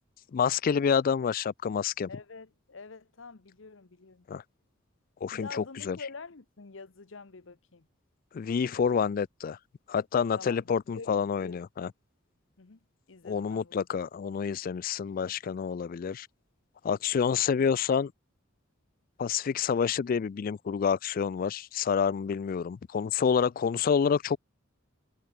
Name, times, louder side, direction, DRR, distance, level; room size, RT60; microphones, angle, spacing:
voice 1, 0.3-2.1 4.3-4.4 5.2-6.0 8.3-9.6 9.9-11.9 13.2-16.3 16.8-18.1 19.2-24.4, left 6 dB, 45° left, 0.3 m, -28 dB
voice 2, 2.1-4.3 5.3-7.9 10.4-11.6 12.6-12.8 13.1-13.7, left 4 dB, 65° left, 1.0 m, -46 dB
head